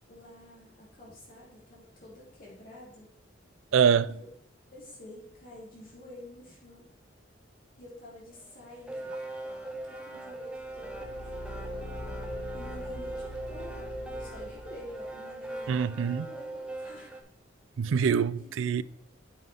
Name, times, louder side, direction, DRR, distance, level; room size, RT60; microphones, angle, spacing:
voice 1, 0.1-3.1 4.1-4.3 4.7-6.9 7.7-9.1 9.8-11.9 12.5-13.8 14.1-17.2 17.8-17.9 18.3-18.6, left 1 dB, 45° left, 3.1 m, -49 dB
voice 2, 3.7-4.1 15.7-16.3 17.8-18.8, right 7 dB, 85° right, 0.4 m, -24 dB
sound 1, 8.3-17.2, right 2 dB, 5° right, 0.7 m, -40 dB
Car / Engine, 10.5-15.1, left 1 dB, 60° left, 1.3 m, -42 dB
8.5 x 6.3 x 3.5 m
head